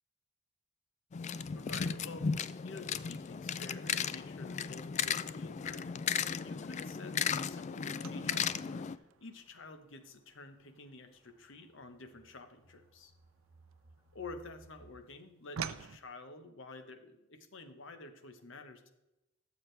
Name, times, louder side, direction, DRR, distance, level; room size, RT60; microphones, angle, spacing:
sound 1, 1.1-9.0, left 7 dB, 35° left, 0.3 m, -36 dB
voice 1, 1.5-13.1 14.1-18.9, left 3 dB, 70° left, 8 dB, 1.1 m, -50 dB
sound 2, 8.0-14.4 14.7-16.0, right 6 dB, 90° right, 0.5 m, -47 dB
sound 3, 9.2-15.0, right 2 dB, 20° right, 4.1 m, -64 dB
13.5 x 7.3 x 3.3 m, 0.95 s
head